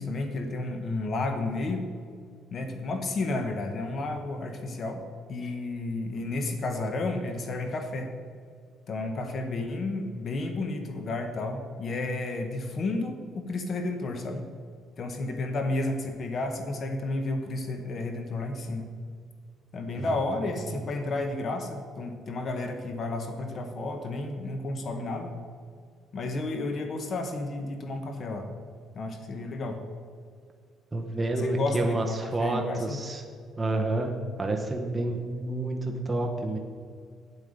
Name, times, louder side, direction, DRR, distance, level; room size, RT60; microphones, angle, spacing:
voice 1, 0.0-1.9 2.5-5.0 5.3-8.1 8.9-14.4 15.0-18.9 19.7-25.3 26.1-28.5 28.9-29.8 31.4-33.0, left 2 dB, 40° left, 6 dB, 0.9 m, -32 dB
voice 2, 30.9-33.2 33.6-36.6, right 2 dB, 15° right, 1 dB, 0.9 m, -29 dB
9.3 x 8.0 x 5.1 m, 2.1 s
cardioid pair, 145°, 0 cm